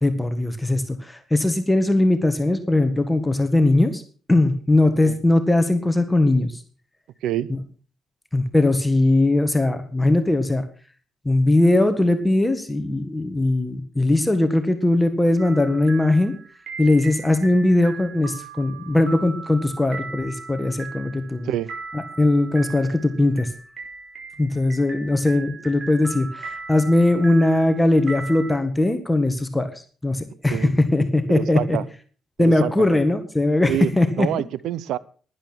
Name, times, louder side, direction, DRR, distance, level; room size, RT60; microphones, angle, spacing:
voice 1, 0.0-4.0 4.3-6.6 8.3-10.6 11.2-16.3 16.8-21.5 21.9-23.5 24.4-31.8 32.4-34.3, left 2 dB, 10° left, 8 dB, 1.6 m, -20 dB
sound 1, 15.4-28.6, right 4 dB, 50° right, 5.5 m, -38 dB
voice 2, 31.3-31.8 32.4-32.9 33.7-33.9 34.2-35.0, right 12 dB, 85° right, 20 dB, 0.6 m, -26 dB
11.5 x 11.0 x 6.1 m, 0.41 s
cardioid pair, 90°, 0 cm